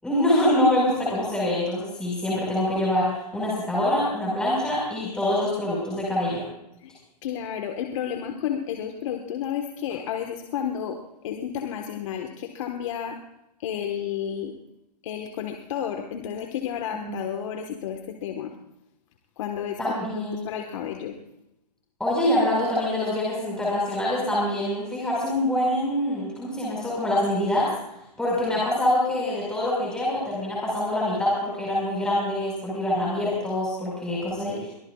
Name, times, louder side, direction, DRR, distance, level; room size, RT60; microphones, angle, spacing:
voice 1, 0.0-6.4 16.9-17.1 19.8-20.5 22.0-27.7 28.2-34.7, left 1 dB, 5° left, -6 dB, 5.1 m, -25 dB
voice 2, 7.2-13.2 13.6-14.5 15.0-18.5 19.4-19.8 20.1-21.2, left 9 dB, 50° left, 4 dB, 1.4 m, -31 dB
23.5 x 18.5 x 2.4 m, 0.86 s
hypercardioid pair, 145°, 21 cm